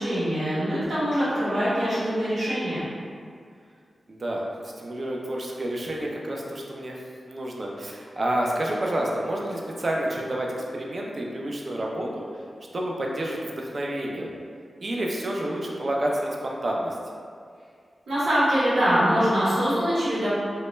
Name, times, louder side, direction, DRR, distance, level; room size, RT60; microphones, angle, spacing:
voice 1, 0.0-2.9 18.1-20.3, equal, 80° right, -11 dB, 0.9 m, -23 dB
voice 2, 4.1-7.0 7.3-12.2 12.7-14.3 14.8-16.9, right 1 dB, 55° right, -2 dB, 0.4 m, -29 dB
2.1 x 2.0 x 3.1 m, 2.2 s
cardioid pair, 40°, 0 cm